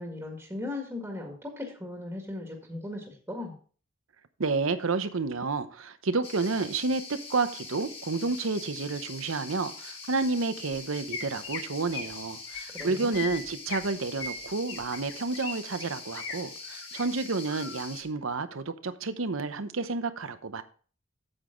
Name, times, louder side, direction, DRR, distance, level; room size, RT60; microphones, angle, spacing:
voice 1, 0.0-3.5 12.7-13.3, left 2 dB, 10° right, 1.8 m, -38 dB
voice 2, 4.4-20.6, right 3 dB, 75° right, 0.8 m, -30 dB
sound 1, 6.2-18.0, left 4 dB, 30° left, 2.3 m, -43 dB
Chirp tweet, 11.1-11.6 11.9-12.1 12.5-12.8 13.1-13.9 14.2-15.5 15.8-16.3 16.8-17.0 17.5-17.8, left 5 dB, 60° left, 1.7 m, -38 dB
8.9 x 8.0 x 3.8 m
head